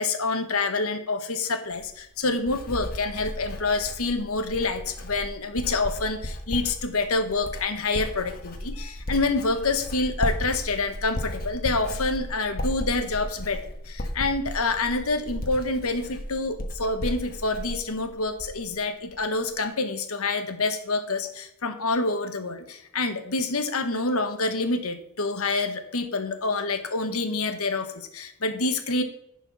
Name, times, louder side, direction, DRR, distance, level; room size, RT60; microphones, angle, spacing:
voice 1, 0.0-29.0, left 3 dB, 75° left, 7 dB, 1.2 m, -27 dB
Writing, 1.7-18.8 19.1-19.5, equal, 40° left, 1.3 m, -35 dB
11.0 x 4.6 x 5.9 m, 0.77 s
head